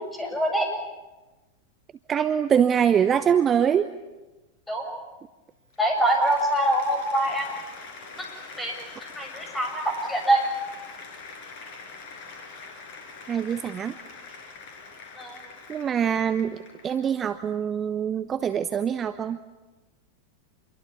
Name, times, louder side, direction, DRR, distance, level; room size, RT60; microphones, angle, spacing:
voice 1, 0.2-0.7 4.7-5.0 5.8-7.5 8.6-10.5 15.2-15.4, right 1 dB, 10° left, 2 dB, 7.7 m, -24 dB
voice 2, 2.1-3.9 13.3-13.9 15.7-16.6 16.8-19.4, right 8 dB, 25° right, 11 dB, 0.9 m, -24 dB
Applause, 5.6-17.1, left 4 dB, 45° left, 5.4 m, -44 dB
27.0 x 22.5 x 8.6 m, 1.1 s
figure-of-eight pair, 90°, 0 cm